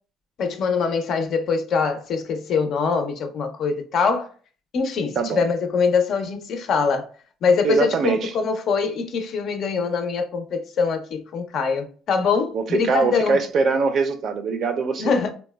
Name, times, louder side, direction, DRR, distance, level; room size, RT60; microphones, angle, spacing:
voice 1, 0.4-4.3 4.7-7.1 7.4-13.4 15.0-15.3, left 5 dB, 55° left, 0.5 m, -23 dB
voice 2, 7.6-8.3 12.5-15.3, right 4 dB, 50° right, 0.4 m, -23 dB
3.9 x 2.1 x 2.2 m
cardioid pair, 130°, 0 cm